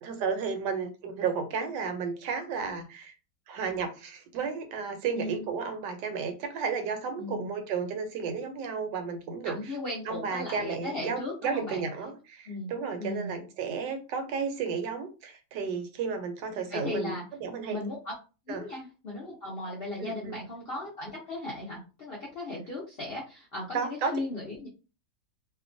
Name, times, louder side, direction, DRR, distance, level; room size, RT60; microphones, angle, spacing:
voice 1, 0.0-3.1 3.5-9.6 10.1-17.1 17.4-17.8 18.5-18.6 20.0-20.4 23.7-24.1, right 5 dB, 80° right, 6 dB, 1.2 m, -33 dB
voice 2, 5.1-5.4 7.2-7.5 9.4-11.9 12.5-12.7 13.0-13.4 16.7-17.2 17.7-18.1 18.5-24.7, left 2 dB, 60° left, -4 dB, 0.6 m, -36 dB
2.8 x 2.1 x 2.5 m, 0.32 s
omnidirectional pair, 1.8 m